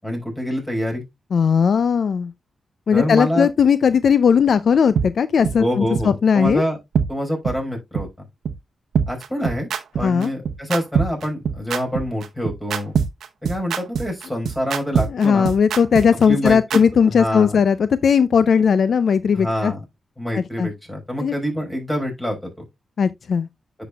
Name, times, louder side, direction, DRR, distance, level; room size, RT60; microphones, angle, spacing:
voice 1, 0.0-1.0 2.9-3.5 5.6-6.8 7.1-8.3 9.1-9.7 10.0-12.9 13.4-15.5 16.3-16.8 17.1-17.6 19.3-19.8 20.2-22.6, equal, 10° left, 4.7 m, -26 dB
voice 2, 1.3-2.3 2.9-6.6 10.0-10.3 15.1-19.7 20.3-20.7 21.2-21.4 23.0-23.5, left 6 dB, 65° left, 0.4 m, -17 dB
sound 1, 5.0-5.1 5.4-5.6 5.9-6.0 6.5-6.6 6.9-7.1 7.4-7.6 7.9-8.0 8.5-8.6 8.9-16.8, right 7 dB, 85° right, 0.8 m, -22 dB
10.0 x 6.0 x 2.3 m
cardioid pair, 75°, 0 cm